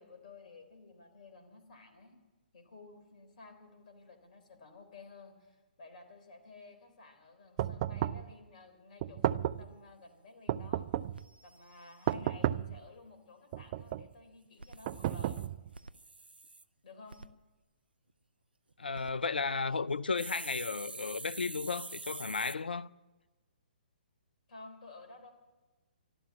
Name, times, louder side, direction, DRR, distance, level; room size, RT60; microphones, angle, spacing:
voice 1, 0.0-2.2 2.5-10.9 11.4-15.4 16.8-17.2 24.5-25.3, left 3 dB, 55° left, 3.7 m, -54 dB
sound 1, 7.6-8.3 9.0-9.7 10.5-11.2 12.1-12.8 13.5-14.1 14.9-15.7, right 12 dB, 35° right, 0.4 m, -33 dB
sound 2, 10.0-10.1 10.5-10.6 10.8-10.9 11.1-12.2 14.5-16.6 17.1-17.3 18.7-19.1 20.2-22.6, right 3 dB, 85° right, 0.7 m, -46 dB
voice 2, 18.8-22.9, left 4 dB, 80° left, 0.6 m, -34 dB
13.0 x 12.5 x 8.6 m
figure-of-eight pair, 130°, 5 cm